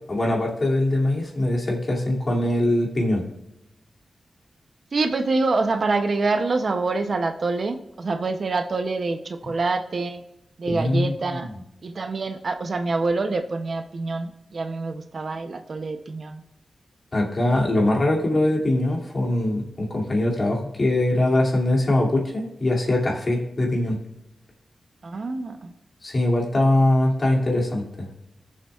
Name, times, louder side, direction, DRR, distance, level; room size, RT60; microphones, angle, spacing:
voice 1, 0.1-3.2 10.7-11.5 17.1-24.0 26.0-28.1, left 1 dB, 35° left, -2 dB, 2.5 m, -22 dB
voice 2, 4.9-10.2 10.6-11.5 11.8-16.4 25.0-25.7, right 3 dB, 50° right, 7 dB, 0.6 m, -26 dB
19.0 x 7.2 x 2.4 m, 0.85 s
wide cardioid pair, 155°, 0 cm